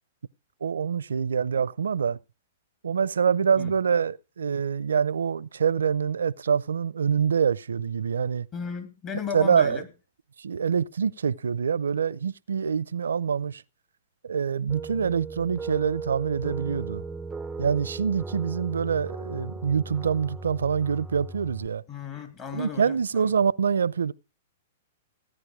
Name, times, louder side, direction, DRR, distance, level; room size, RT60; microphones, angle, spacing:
voice 1, 0.6-2.2 2.8-8.5 9.3-9.8 10.4-13.6 14.2-17.0 17.6-21.8 22.5-24.1, right 7 dB, 85° right, 0.6 m, -25 dB
voice 2, 8.5-9.9 21.9-23.3, left 6 dB, 35° left, 3.2 m, -35 dB
sound 1, 14.7-21.7, right 3 dB, 10° right, 0.6 m, -37 dB
17.0 x 9.8 x 4.9 m
hypercardioid pair, 120°, 0 cm